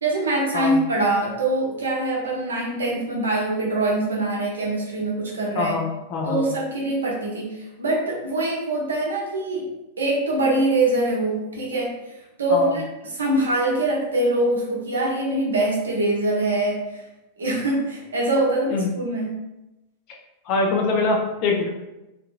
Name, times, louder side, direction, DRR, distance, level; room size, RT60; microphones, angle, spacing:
voice 1, 0.0-5.8 6.2-9.7 10.0-11.9 12.4-12.8 13.1-17.0 17.4-19.4, right 2 dB, 70° right, -3 dB, 0.7 m, -23 dB
voice 2, 5.6-6.4 12.5-12.7 18.7-18.9 20.5-21.7, left 3 dB, 40° left, 0 dB, 0.5 m, -23 dB
2.7 x 2.5 x 2.4 m, 0.97 s
figure-of-eight pair, 90°, 0 cm